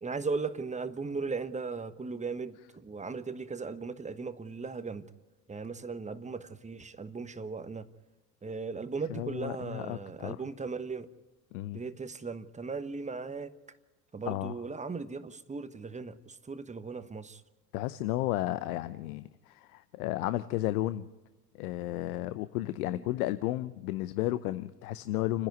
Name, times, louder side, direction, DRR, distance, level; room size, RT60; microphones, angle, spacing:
voice 1, 0.0-5.1 5.5-7.9 8.4-11.1 11.7-13.5 14.1-17.4 22.9-23.0, right 4 dB, 15° right, 1.1 m, -37 dB
voice 2, 9.1-10.4 11.5-11.8 14.2-14.6 17.7-21.1 21.5-25.5, left 15 dB, 65° left, 0.8 m, -33 dB
29.5 x 10.5 x 9.4 m
figure-of-eight pair, 70°, 48 cm